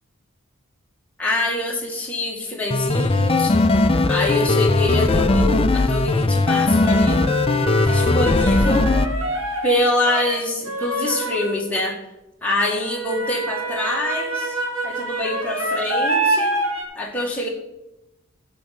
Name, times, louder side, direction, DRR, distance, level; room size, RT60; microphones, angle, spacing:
voice 1, 1.2-3.6 4.1-7.2 7.8-8.9 9.6-12.0 12.4-14.6 14.8-16.6 17.0-17.5, left 1 dB, 5° left, -2 dB, 1.7 m, -25 dB
sound 1, 2.7-9.1, left 2 dB, 25° left, 0.5 m, -18 dB
sound 2, 3.8-3.9 6.7-11.7 12.8-16.8, right 2 dB, 85° right, 2.2 m, -26 dB
12.5 x 5.5 x 6.5 m, 0.93 s
head